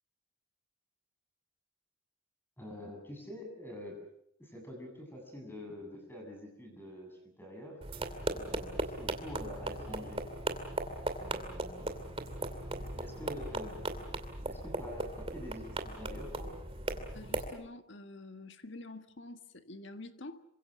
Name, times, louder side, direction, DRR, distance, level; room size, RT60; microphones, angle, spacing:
voice 1, 2.6-4.0 4.4-7.8 8.3-10.3 11.2-12.0 12.7-13.9 14.4-16.5, left 1 dB, 10° left, 3 dB, 7.9 m, -46 dB
sound 1, 7.8-17.5, right 2 dB, 25° right, 2.6 m, -38 dB
voice 2, 17.1-20.4, left 2 dB, 60° left, 8 dB, 1.6 m, -47 dB
27.5 x 25.0 x 6.3 m, 0.74 s
head